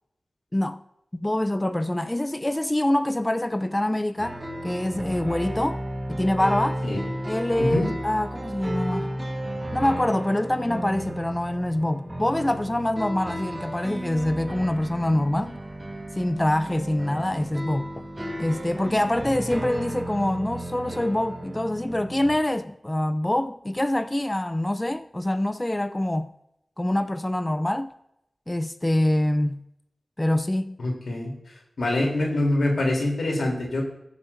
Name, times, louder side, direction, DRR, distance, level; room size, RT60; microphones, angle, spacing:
voice 1, 1.1-5.8 6.1-6.8 7.2-9.2 9.7-15.6 16.2-18.0 18.4-26.3 26.8-27.9 28.5-29.6 30.2-30.8, left 1 dB, 15° left, 0.5 m, -25 dB
sound 1, 4.2-22.4, right 1 dB, 20° right, 1.5 m, -34 dB
voice 2, 30.8-31.3 31.8-33.8, left 1 dB, 90° left, 3.5 m, -24 dB
19.0 x 7.4 x 2.7 m
wide cardioid pair, 85°, 0 cm